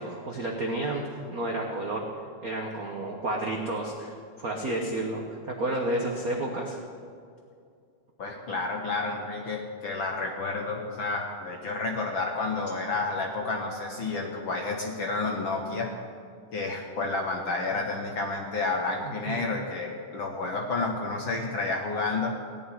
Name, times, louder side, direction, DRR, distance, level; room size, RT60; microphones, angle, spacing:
voice 1, 0.0-2.1 2.4-6.8 19.0-19.5, right 1 dB, 85° right, 1 dB, 0.7 m, -31 dB
voice 2, 8.2-15.9 16.5-22.4, left 3 dB, 65° left, 1 dB, 1.2 m, -30 dB
17.5 x 6.2 x 9.8 m, 2.3 s
omnidirectional pair, 3.4 m